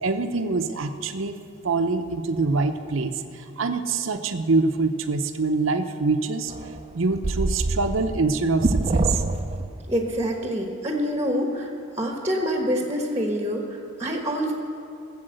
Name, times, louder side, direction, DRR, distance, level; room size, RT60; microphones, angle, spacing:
voice 1, 0.0-1.3 1.6-6.5 6.9-9.2, right 3 dB, 75° right, 7 dB, 0.7 m, -25 dB
sound 1, 6.5-9.9, right 2 dB, 30° right, 0.5 m, -25 dB
voice 2, 9.9-11.7 12.0-14.5, equal, 10° right, 1 dB, 1.2 m, -26 dB
17.0 x 7.2 x 7.8 m, 2.5 s
head